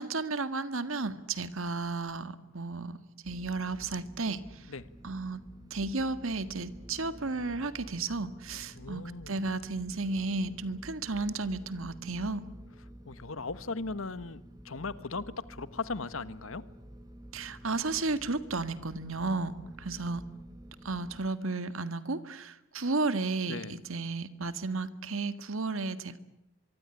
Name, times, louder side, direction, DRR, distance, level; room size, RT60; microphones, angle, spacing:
voice 1, 0.0-3.0 3.2-4.4 5.0-5.4 5.7-12.5 17.3-19.5 19.8-20.2 20.9-26.2, right 3 dB, 75° right, 12 dB, 1.8 m, -33 dB
sound 1, 3.2-21.3, equal, 15° right, 1.5 m, -50 dB
voice 2, 8.7-9.4 13.0-16.6 23.4-23.8, left 3 dB, 75° left, 15 dB, 1.3 m, -38 dB
24.0 x 24.0 x 10.0 m, 0.82 s
head